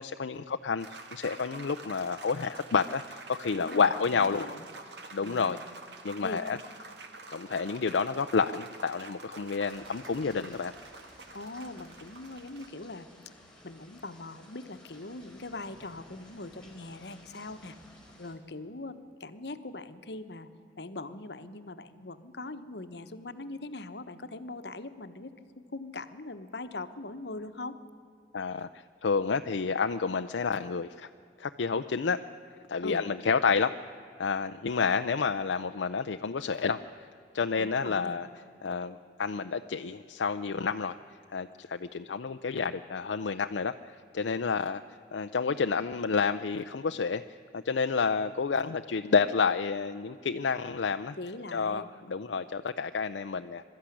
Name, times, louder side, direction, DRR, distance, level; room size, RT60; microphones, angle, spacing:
voice 1, 0.0-4.5 5.1-5.6 6.0-6.6 7.3-10.7 28.3-31.1 31.4-32.2 32.7-33.7 34.2-37.1 37.3-38.3 38.6-41.0 41.3-44.8 45.1-47.2 47.5-51.2 51.5-53.6, left 5 dB, 75° left, 8 dB, 0.5 m, -29 dB
sound 1, 0.8-12.7, right 3 dB, 65° right, 1.8 m, -48 dB
voice 2, 3.5-4.7 5.2-5.5 6.2-6.4 11.3-13.1 13.6-17.8 18.2-20.5 20.8-25.3 25.7-27.8 32.8-33.0 37.6-38.2 51.2-51.9, left 2 dB, 60° left, 10 dB, 1.1 m, -41 dB
sound 2, 9.7-18.4, left 1 dB, 5° left, 3.5 m, -56 dB
22.0 x 13.0 x 10.0 m, 2.6 s
head